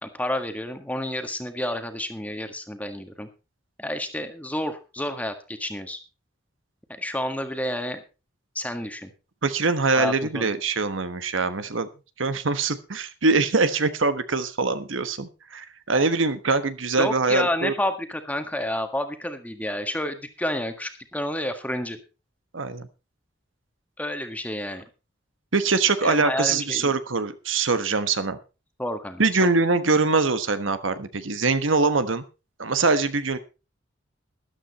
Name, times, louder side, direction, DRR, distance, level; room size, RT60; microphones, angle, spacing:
voice 1, 0.0-3.3 3.8-6.0 6.9-8.0 8.5-9.1 10.0-10.5 17.0-22.0 24.0-24.8 26.0-26.9 28.8-29.2, left 1 dB, 10° left, 7 dB, 1.6 m, -30 dB
voice 2, 9.4-11.9 12.2-17.7 22.5-22.9 25.5-28.4 29.2-32.2 32.6-33.4, right 4 dB, 80° right, 11 dB, 1.3 m, -23 dB
13.5 x 12.0 x 4.2 m, 0.31 s
head